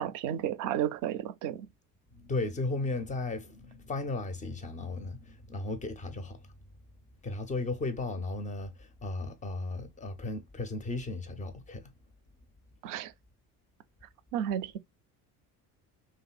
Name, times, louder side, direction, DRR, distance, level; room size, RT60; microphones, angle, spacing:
voice 1, 0.0-1.7 12.8-13.1 14.3-14.8, right 10 dB, 45° right, 0.5 m, -32 dB
voice 2, 2.1-6.5 7.2-11.9, left 2 dB, 20° left, 0.4 m, -35 dB
2.7 x 2.4 x 2.2 m
hypercardioid pair, 65°, 45 cm